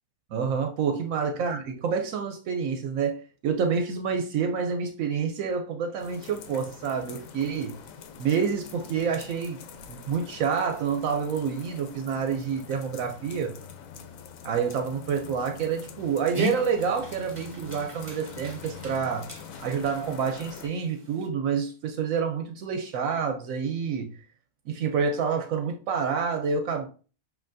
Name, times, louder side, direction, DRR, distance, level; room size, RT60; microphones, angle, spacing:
voice 1, 0.3-7.8 8.2-9.6 9.9-13.6 14.4-19.3 19.6-24.2 24.7-26.9, right 6 dB, 80° right, 1.0 m, -28 dB
sound 1, 6.0-20.7, left 5 dB, 80° left, 1.0 m, -44 dB
Dog, 15.9-21.3, left 1 dB, 25° right, 1.1 m, -39 dB
7.5 x 2.6 x 2.6 m
omnidirectional pair, 1.4 m